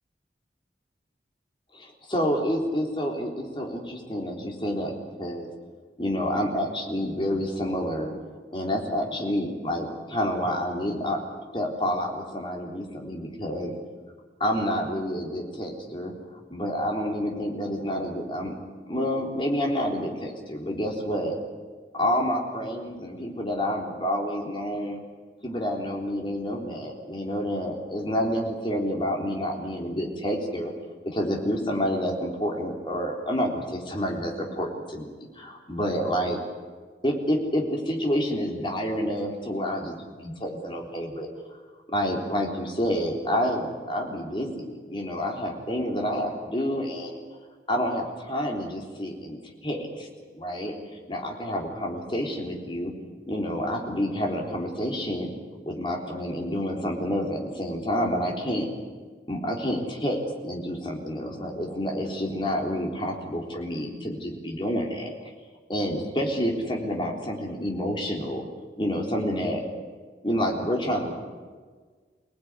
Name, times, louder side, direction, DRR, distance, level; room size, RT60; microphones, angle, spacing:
voice 1, 1.7-4.9 5.2-5.5 6.0-8.1 8.5-11.2 11.5-13.7 14.4-16.1 16.5-18.5 18.9-21.4 21.9-25.0 25.4-30.7 31.1-36.4 37.0-41.3 41.9-47.2 47.7-50.1 50.3-52.9 53.3-55.3 55.7-58.7 59.3-65.1 65.7-68.4 68.8-69.6 70.2-71.1, equal, 30° left, 0 dB, 3.7 m, -28 dB
25.0 x 19.0 x 9.8 m, 1.5 s
head